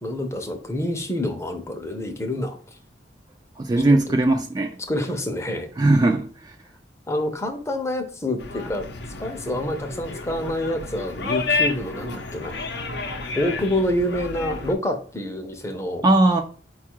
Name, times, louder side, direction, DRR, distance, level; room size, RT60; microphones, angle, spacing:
voice 1, 0.0-2.6 3.9-4.2 4.9-5.7 7.1-8.9 9.2-12.6 13.4-16.1, left 1 dB, 15° left, 0.6 m, -27 dB
voice 2, 3.6-4.8 5.8-6.5 16.0-16.4, right 2 dB, 20° right, 0.3 m, -19 dB
sound 1, 8.4-14.7, left 3 dB, 65° left, 0.6 m, -30 dB
4.5 x 2.4 x 4.4 m
head